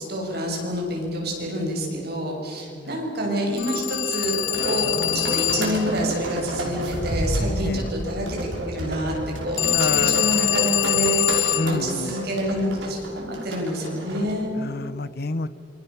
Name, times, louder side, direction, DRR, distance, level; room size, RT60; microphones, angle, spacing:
voice 1, 0.0-8.4 8.7-9.2 9.4-14.5, equal, 55° right, -1 dB, 7.2 m, -27 dB
voice 2, 2.7-3.0 7.6-7.9 9.7-10.7 11.5-12.2 14.5-15.5, left 3 dB, 55° left, 15 dB, 0.9 m, -30 dB
Telephone, 3.6-5.9 9.6-11.8, left 14 dB, 85° left, 0.8 m, -24 dB
sound 1, 4.3-14.3, equal, 75° right, 5.8 m, -30 dB
Bass guitar, 4.9-11.2, equal, 15° left, 7.2 m, -39 dB
28.0 x 24.5 x 7.1 m, 2.6 s
head